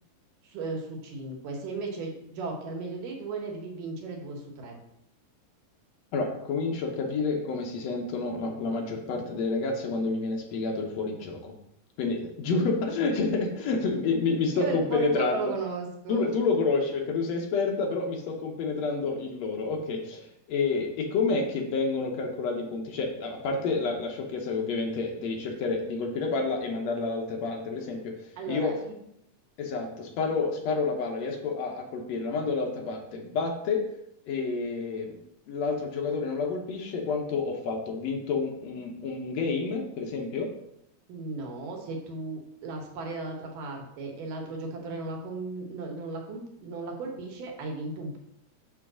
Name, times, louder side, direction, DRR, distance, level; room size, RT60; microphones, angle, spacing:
voice 1, 0.4-4.8 14.5-16.3 28.4-29.0 41.1-48.2, right 3 dB, 80° right, 1 dB, 2.8 m, -35 dB
voice 2, 6.1-11.5 12.0-15.5 16.1-28.8 29.6-33.8 34.3-35.2 35.5-40.5, left 4 dB, 70° left, 1 dB, 1.6 m, -29 dB
7.0 x 3.1 x 6.1 m, 0.78 s
omnidirectional pair, 3.8 m